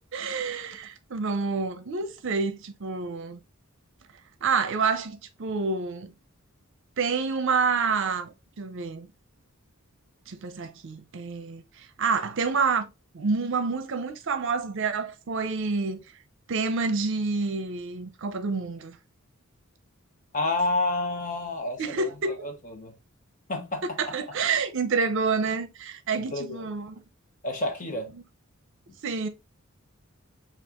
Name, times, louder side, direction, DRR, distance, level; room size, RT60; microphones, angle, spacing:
voice 1, 0.0-3.4 4.4-6.1 7.0-9.1 10.3-16.0 16.5-19.0 21.8-22.5 23.8-27.0 29.0-29.3, right 4 dB, 60° right, 0.6 m, -28 dB
voice 2, 20.3-22.1 22.4-22.9 23.5-24.1 26.2-26.7 27.4-28.1, left 2 dB, 40° left, 0.9 m, -29 dB
5.7 x 2.4 x 2.9 m
head